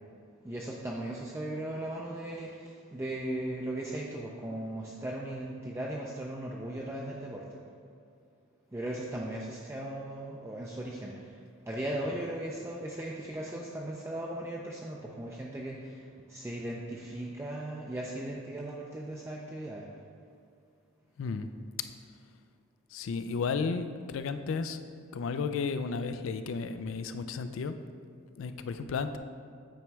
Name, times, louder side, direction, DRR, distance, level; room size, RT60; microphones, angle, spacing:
voice 1, 0.4-7.6 8.7-19.9, right 1 dB, 10° right, -3 dB, 0.4 m, -37 dB
voice 2, 21.2-21.5 22.9-24.8 25.1-27.8 28.4-29.2, left 5 dB, 65° left, 10 dB, 0.3 m, -33 dB
9.0 x 3.1 x 4.6 m, 2.3 s
head